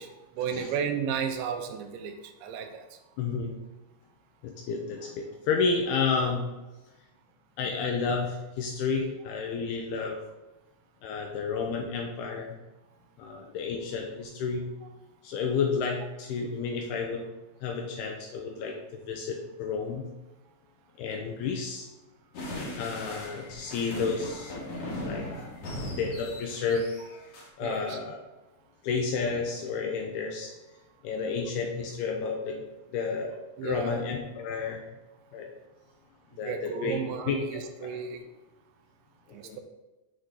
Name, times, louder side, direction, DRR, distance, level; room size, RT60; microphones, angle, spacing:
voice 1, 0.0-2.2 2.4-2.9 27.6-28.0 33.6-34.0 36.4-38.3 39.3-39.6, right 7 dB, 85° right, 6 dB, 3.0 m, -33 dB
voice 2, 3.2-3.6 4.4-6.5 7.6-10.2 11.0-12.6 13.2-14.7 15.2-17.2 17.6-20.1 21.0-21.9 22.8-24.6 25.0-25.3 25.9-26.9 27.6-28.2 28.8-30.5 31.0-32.6 32.9-34.8 35.3-35.5 36.4-37.0 37.3-38.0 39.3-39.6, left 5 dB, 80° left, 2 dB, 2.4 m, -31 dB
sound 1, 22.3-27.5, left 1 dB, 55° left, 1.8 m, -38 dB
8.5 x 4.9 x 3.9 m, 1.1 s
omnidirectional pair, 5.2 m